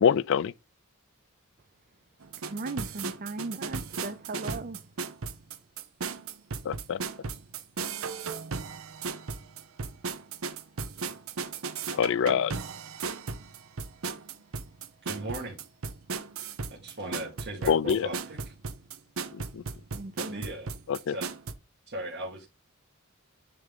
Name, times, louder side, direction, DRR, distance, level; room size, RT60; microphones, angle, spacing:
voice 1, 0.0-0.5 6.6-7.0 11.9-12.5 17.7-18.1 19.3-19.6 20.9-21.2, left 7 dB, 65° left, 0.4 m, -25 dB
sound 1, 2.2-21.5, right 5 dB, 80° right, 0.8 m, -36 dB
voice 2, 2.5-4.8 19.9-20.4, right 2 dB, 40° right, 0.5 m, -37 dB
voice 3, 15.0-15.6 16.7-18.5 20.2-20.7 21.1-21.3 21.9-22.5, right 1 dB, 55° right, 1.9 m, -38 dB
9.6 x 3.7 x 3.6 m
head